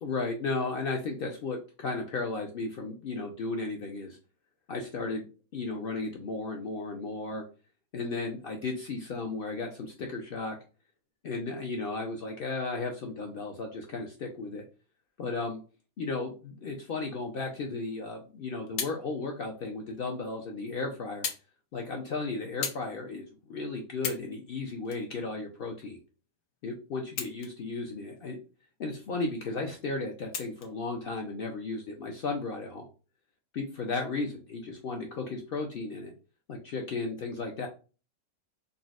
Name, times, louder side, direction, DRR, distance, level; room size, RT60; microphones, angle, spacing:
voice 1, 0.0-4.2 4.7-5.3 5.5-7.4 7.9-10.6 11.2-14.6 15.2-15.6 16.0-21.3 21.7-26.0 26.6-28.4 28.8-32.9 33.5-36.1 36.5-37.7, left 3 dB, 70° left, 2 dB, 0.5 m, -34 dB
sound 1, 18.2-19.0 19.9-20.0 21.2-21.5 21.8-22.0 22.6-22.9 23.4-23.5 23.9-24.3 24.8-25.9 27.0-27.7 28.2-28.3 30.3-30.7 31.6-31.8, left 7 dB, 90° left, 1.1 m, -36 dB
3.9 x 2.0 x 2.4 m, 0.33 s
omnidirectional pair, 1.5 m